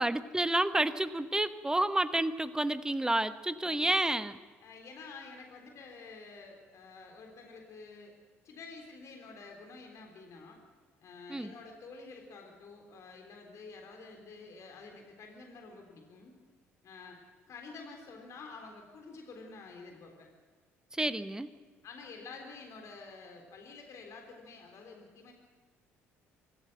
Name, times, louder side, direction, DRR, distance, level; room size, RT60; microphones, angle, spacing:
voice 1, 0.0-4.4 11.3-11.5 21.0-21.5, right 1 dB, 10° right, 13 dB, 1.1 m, -30 dB
voice 2, 3.6-4.0 4.6-8.1 8.4-10.6 11.0-16.3 16.8-17.2 17.5-20.3 21.8-25.3, left 4 dB, 50° left, 3 dB, 3.7 m, -49 dB
24.5 x 14.5 x 7.9 m, 1.4 s
figure-of-eight pair, 50°, 7 cm